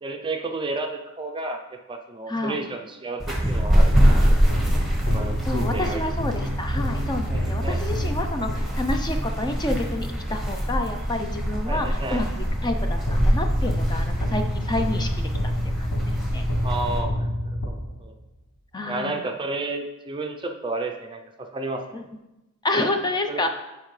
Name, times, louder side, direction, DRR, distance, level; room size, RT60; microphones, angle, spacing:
voice 1, 0.0-1.6 1.9-3.9 4.3-4.4 5.0-6.0 7.3-7.8 11.7-12.2 16.6-17.3 17.6-17.7 18.0-18.1 18.9-21.2 21.5-22.0 23.3-23.5, right 2 dB, 20° right, 4 dB, 0.5 m, -31 dB
voice 2, 2.3-2.6 5.4-12.3 12.6-15.5 15.8-16.4 18.7-19.2 21.9-22.0 22.6-23.5, left 2 dB, 20° left, 5 dB, 0.6 m, -29 dB
sound 1, 3.2-17.0, equal, ahead, 1.6 m, -24 dB
sound 2, 3.9-9.0 13.1-18.3, equal, 70° left, 0.9 m, -29 dB
10.0 x 5.1 x 3.3 m, 0.97 s
head